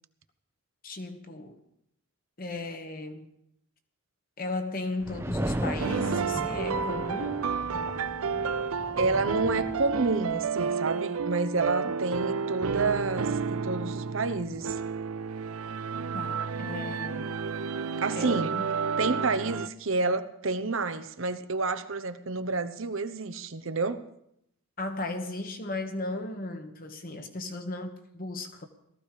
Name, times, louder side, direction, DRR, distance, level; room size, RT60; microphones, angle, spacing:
voice 1, 0.8-1.6 2.4-3.3 4.4-7.4 16.1-17.3 18.1-18.6 24.8-28.7, left 2 dB, 40° left, 6 dB, 1.4 m, -36 dB
sound 1, 5.0-10.5, right 1 dB, 10° right, 0.8 m, -36 dB
sound 2, 5.8-19.7, right 5 dB, 90° right, 0.6 m, -31 dB
voice 2, 9.0-14.8 18.0-18.5 19.0-24.0, right 3 dB, 70° right, 11 dB, 1.0 m, -29 dB
18.0 x 14.0 x 5.0 m, 0.78 s
head